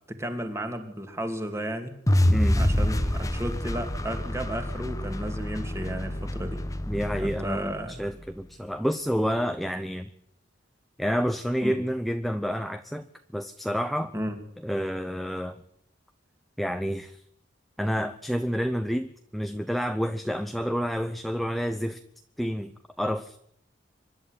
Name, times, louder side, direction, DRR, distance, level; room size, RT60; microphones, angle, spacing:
voice 1, 0.1-1.9 2.6-6.6 7.2-8.0 11.6-11.8 14.1-14.4, equal, 15° right, 6 dB, 2.7 m, -33 dB
sound 1, 2.1-8.2, left 1 dB, 20° left, 1.1 m, -27 dB
voice 2, 2.3-2.8 6.9-10.1 11.0-13.1 13.3-14.1 14.6-15.6 16.6-17.2 17.8-22.0 22.4-22.7 23.0-23.4, equal, ahead, 8 dB, 0.8 m, -29 dB
25.0 x 11.5 x 9.8 m, 0.70 s
head